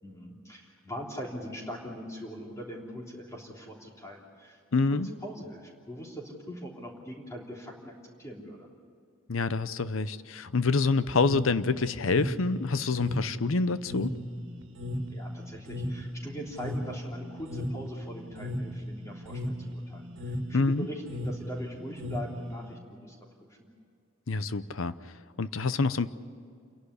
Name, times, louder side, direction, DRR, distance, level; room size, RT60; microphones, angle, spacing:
voice 1, 0.0-4.6 4.9-8.7 15.1-23.1, equal, 15° left, -1 dB, 3.4 m, -41 dB
voice 2, 4.7-5.1 9.3-14.1 20.5-20.9 24.3-24.9 25.4-26.1, left 4 dB, 80° left, 14 dB, 0.7 m, -27 dB
sound 1, 11.1-22.7, left 1 dB, 65° right, 1.9 m, -36 dB
28.0 x 11.5 x 9.8 m, 2.3 s
head